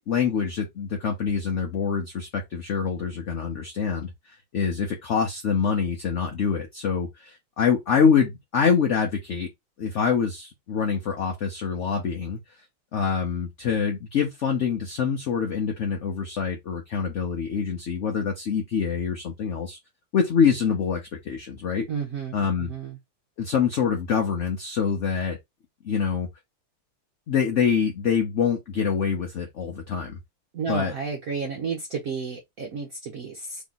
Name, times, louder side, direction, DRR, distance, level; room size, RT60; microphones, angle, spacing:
voice 1, 0.1-4.1 4.5-9.5 9.8-12.4 12.9-19.8 20.1-21.8 22.3-22.7 23.4-25.4 25.8-26.3 27.3-30.2 30.7-30.9, left 6 dB, 60° left, 0.8 m, -25 dB
voice 2, 21.9-23.0 30.5-33.6, right 5 dB, 60° right, 0.9 m, -32 dB
3.2 x 3.0 x 3.9 m
omnidirectional pair, 2.1 m